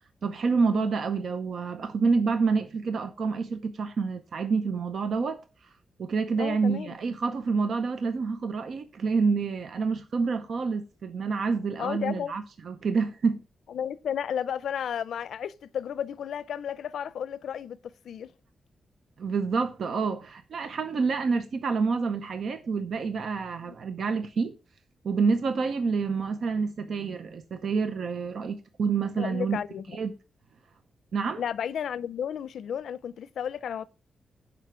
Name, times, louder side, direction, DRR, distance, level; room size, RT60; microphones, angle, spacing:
voice 1, 0.2-5.4 6.0-13.4 19.2-24.6 25.0-29.6 29.9-30.1 31.1-31.4, right 4 dB, 55° right, 0.6 m, -28 dB
voice 2, 6.4-7.0 11.8-12.4 13.7-17.8 18.0-18.3 23.7-23.8 29.2-30.0 31.4-33.8, left 8 dB, 75° left, 0.5 m, -33 dB
11.0 x 4.9 x 4.5 m
wide cardioid pair, 165°, 0 cm